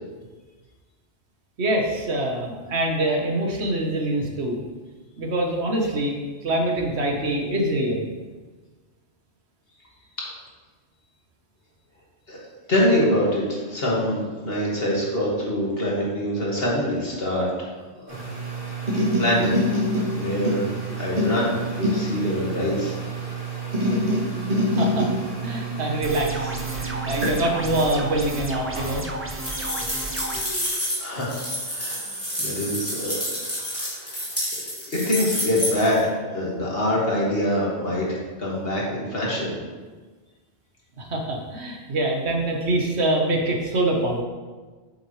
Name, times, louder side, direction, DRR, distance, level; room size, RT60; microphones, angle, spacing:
voice 1, 1.6-4.6 5.2-8.0 24.6-25.1 25.4-29.1 41.0-44.2, right 1 dB, 70° right, 1 dB, 1.4 m, -25 dB
voice 2, 12.7-17.7 17.9-18.2 18.8-19.6 20.1-23.0 30.7-32.0 32.4-33.2 33.9-34.1 34.5-39.5, equal, 60° left, -4 dB, 2.1 m, -25 dB
sound 1, 18.1-30.7 31.3-34.1, equal, 50° right, 2.5 m, -28 dB
sound 2, 26.0-30.4, right 2 dB, 15° right, 0.4 m, -33 dB
sound 3, 29.4-36.0, left 1 dB, 10° left, 2.4 m, -29 dB
8.5 x 7.0 x 3.2 m, 1.4 s
omnidirectional pair, 1.2 m